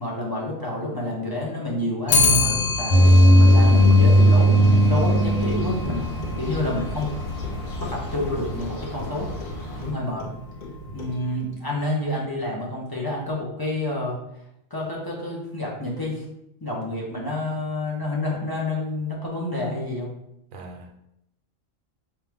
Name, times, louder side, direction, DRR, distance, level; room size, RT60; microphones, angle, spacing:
voice 1, 0.0-2.9 3.4-7.1 7.8-9.3 9.8-10.3 10.9-14.2 14.7-16.2 16.6-20.1, left 1 dB, 20° left, -3 dB, 0.8 m, -29 dB
Clock, 2.1-11.5, left 3 dB, 60° left, 0.6 m, -29 dB
sound 1, 2.9-9.9, equal, 90° left, 1.4 m, -19 dB
voice 2, 6.3-6.6 10.8-11.1 20.5-21.0, right 3 dB, 85° right, 3 dB, 1.1 m, -41 dB
4.6 x 2.5 x 3.5 m, 0.82 s
omnidirectional pair, 1.4 m